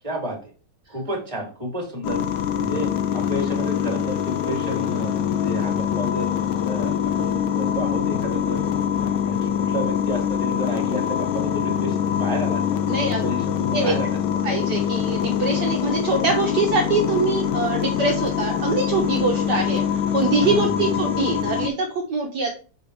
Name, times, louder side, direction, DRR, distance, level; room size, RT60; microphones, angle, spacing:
voice 1, 0.0-0.5 0.9-6.3 6.6-8.6 9.0-12.8 13.2-14.2 20.4-20.7, right 1 dB, 15° right, -1 dB, 2.6 m, -31 dB
sound 1, 2.0-21.7, left 9 dB, 80° left, 1.4 m, -24 dB
voice 2, 12.9-13.3 13.7-13.9 14.4-19.8 20.1-22.5, right 3 dB, 60° right, 0 dB, 1.6 m, -23 dB
6.6 x 5.0 x 3.2 m, 0.36 s
omnidirectional pair, 2.2 m